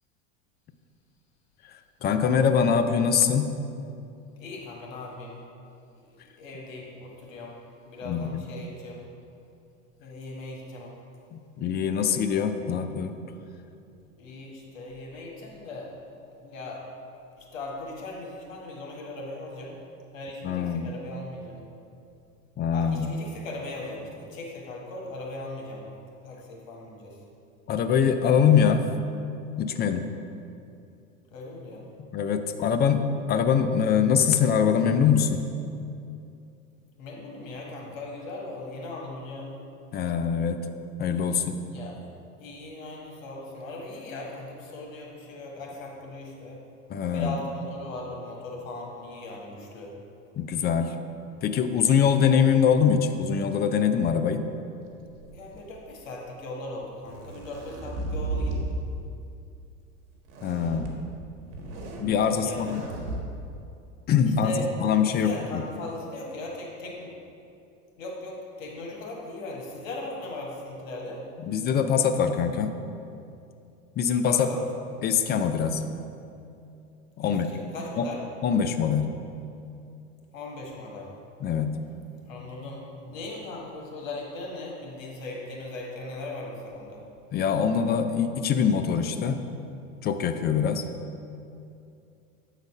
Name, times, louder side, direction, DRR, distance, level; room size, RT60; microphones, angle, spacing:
voice 1, 1.7-3.5 8.0-8.4 11.3-13.2 20.4-20.9 22.6-23.1 27.7-28.9 29.6-30.1 32.1-35.4 39.9-40.7 41.0-41.6 46.9-47.4 50.4-51.0 51.4-54.4 60.4-60.9 62.0-62.8 64.1-65.3 71.4-72.7 74.0-74.5 75.0-75.8 77.2-77.5 78.0-78.1 78.4-79.1 81.4-81.8 87.3-89.4 90.0-90.8, left 7 dB, 25° left, 8 dB, 0.4 m, -23 dB
voice 2, 4.4-5.4 6.1-7.6 7.8-9.0 10.0-11.0 14.2-15.9 16.4-16.8 17.4-19.8 20.1-21.7 22.7-25.9 26.2-27.2 31.3-31.9 37.0-39.5 41.7-42.0 42.4-46.6 47.1-49.9 55.3-58.5 62.3-62.8 64.4-64.7 65.0-67.2 68.0-71.2 74.3-74.6 77.2-78.2 80.3-81.1 82.2-87.0, left 2 dB, 85° left, -1 dB, 1.6 m, -38 dB
sound 1, 55.1-55.9 56.8-58.7 60.3-60.9 61.4-62.1 62.5-63.2, right 2 dB, 60° right, 1.5 m, -34 dB
8.0 x 4.1 x 5.3 m, 2.6 s
hypercardioid pair, 100°, 39 cm